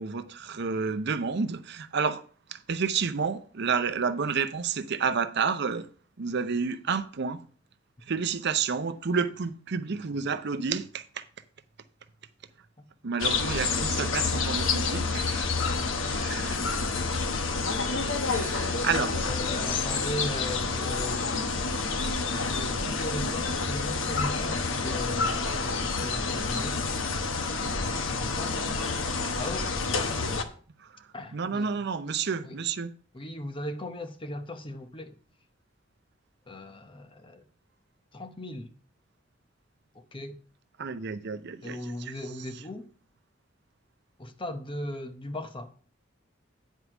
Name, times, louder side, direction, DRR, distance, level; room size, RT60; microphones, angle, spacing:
voice 1, 0.0-2.2 2.5-5.9 6.2-7.4 8.0-11.2 13.0-15.5 16.0-16.6 18.2-19.3 30.8-30.9 31.3-32.9 40.8-42.1, right 5 dB, 60° right, 0.6 m, -30 dB
sound 1, 13.2-30.4, left 4 dB, 80° left, 1.0 m, -28 dB
voice 2, 19.2-21.3 22.3-27.0 27.8-28.5 29.3-29.7 31.1-31.7 32.4-32.6 33.1-35.2 36.5-37.4 38.1-38.7 39.9-40.4 41.6-42.9 44.2-45.7, left 1 dB, 25° left, 0.9 m, -38 dB
9.6 x 4.6 x 6.0 m
head